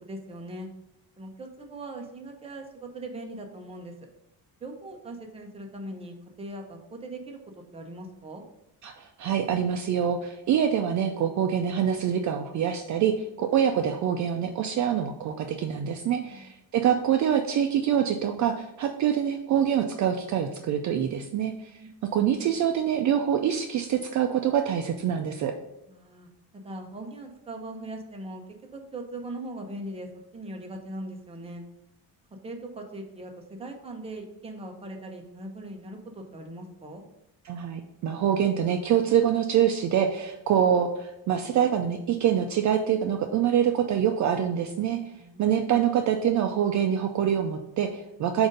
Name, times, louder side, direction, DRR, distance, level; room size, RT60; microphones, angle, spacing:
voice 1, 0.0-0.7 1.2-3.9 4.6-7.4 7.7-8.4 16.2-16.5 21.8-21.9 25.9-28.4 28.7-30.1 30.3-31.6 32.4-37.0 45.1-45.5, right 1 dB, 15° right, 2 dB, 0.7 m, -40 dB
voice 2, 8.8-21.8 22.1-25.5 37.4-45.1 45.4-48.5, right 9 dB, 50° right, 5 dB, 0.4 m, -25 dB
7.7 x 2.6 x 5.2 m, 0.87 s
cardioid pair, 160°, 39 cm